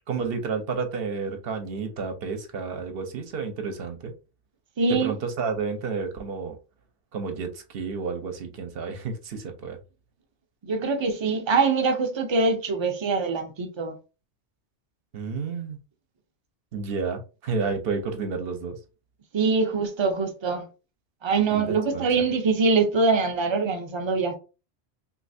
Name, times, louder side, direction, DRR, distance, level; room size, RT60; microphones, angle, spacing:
voice 1, 0.1-4.1 4.9-6.6 7.1-9.8 15.1-15.8 16.7-18.8 21.5-22.1, right 5 dB, 60° right, 0.8 m, -31 dB
voice 2, 4.8-5.1 10.6-14.0 19.3-20.7 21.2-24.4, right 4 dB, 40° right, 0.4 m, -23 dB
3.1 x 2.7 x 2.6 m
omnidirectional pair, 1.2 m